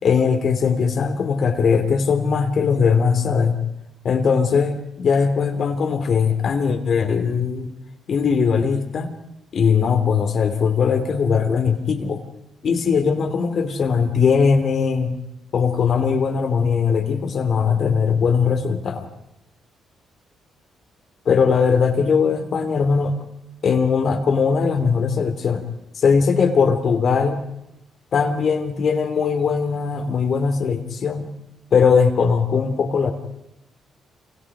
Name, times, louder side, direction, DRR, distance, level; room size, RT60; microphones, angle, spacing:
voice 1, 0.0-3.6 4.0-7.7 8.1-9.1 9.5-12.2 12.6-15.2 15.5-19.1 21.2-23.1 23.6-25.6 25.9-27.4 28.1-31.3 31.7-33.1, left 6 dB, 55° left, 6 dB, 3.1 m, -20 dB
28.0 x 27.5 x 5.0 m, 0.85 s
cardioid pair, 90°, 0 cm